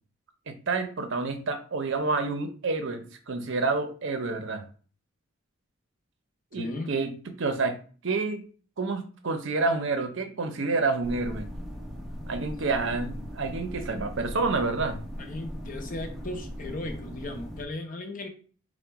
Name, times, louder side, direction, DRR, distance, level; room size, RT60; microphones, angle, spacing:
voice 1, 0.5-4.7 6.5-7.8 8.0-8.4 8.8-11.5 12.3-15.0, right 3 dB, 55° right, 7 dB, 0.6 m, -29 dB
voice 2, 6.5-6.9 12.8-12.9 15.2-18.3, left 2 dB, 40° left, 4 dB, 0.7 m, -36 dB
sound 1, 11.0-17.7, equal, ahead, 0.5 m, -38 dB
3.9 x 2.1 x 4.5 m, 0.40 s
head